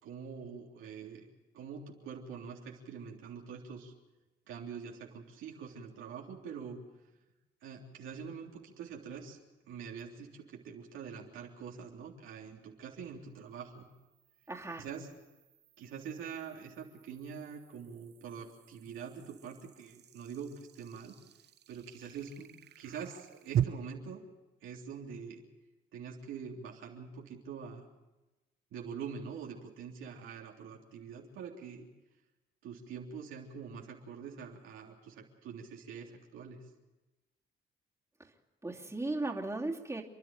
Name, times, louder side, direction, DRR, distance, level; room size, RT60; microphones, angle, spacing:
voice 1, 0.0-1.3 1.5-3.9 4.5-6.8 7.6-9.4 9.6-13.9 14.8-15.1 15.8-21.1 21.7-24.2 24.6-25.4 25.9-27.9 28.7-31.9 32.6-36.7, right 6 dB, 85° right, -1 dB, 3.4 m, -45 dB
sound 1, 10.0-10.1 13.5-23.6, right 10 dB, 55° right, 0.7 m, -42 dB
voice 2, 14.5-14.8 38.6-40.0, right 2 dB, 15° right, -1 dB, 2.8 m, -36 dB
29.5 x 11.0 x 8.9 m, 1.1 s
cardioid pair, 90°, 20 cm